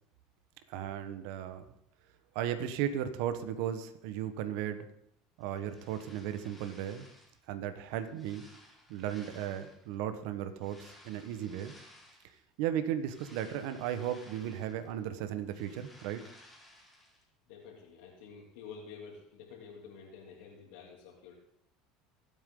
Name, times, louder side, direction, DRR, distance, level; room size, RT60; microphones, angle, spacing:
voice 1, 0.7-1.6 2.3-4.9 5.4-7.1 7.5-8.5 8.9-11.7 12.6-16.2, right 10 dB, 75° right, 9 dB, 1.4 m, -35 dB
sound 1, 5.4-7.4 7.9-10.0 10.6-12.4 12.8-15.0 15.3-17.2, left 1 dB, ahead, 4.8 m, -58 dB
voice 2, 17.5-21.3, left 6 dB, 80° left, -6 dB, 3.3 m, -49 dB
24.5 x 8.9 x 4.0 m, 0.74 s
supercardioid pair, 120°, 0 cm